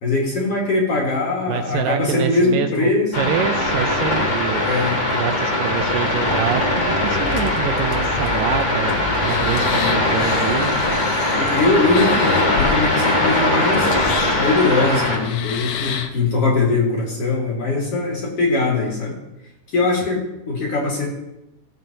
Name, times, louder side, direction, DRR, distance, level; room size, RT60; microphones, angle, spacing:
voice 1, 0.0-3.3 4.6-5.2 9.7-10.0 11.4-13.9 14.4-19.1 19.7-21.1, left 3 dB, 50° left, -2 dB, 2.1 m, -21 dB
voice 2, 1.5-2.9 3.2-4.7 5.2-11.0, right 9 dB, 80° right, 7 dB, 2.2 m, -26 dB
sound 1, 3.1-15.2, left 2 dB, 25° left, 1.9 m, -20 dB
sound 2, 7.0-16.2, left 6 dB, 80° left, 1.6 m, -30 dB
16.0 x 7.6 x 2.7 m, 0.92 s
omnidirectional pair, 4.2 m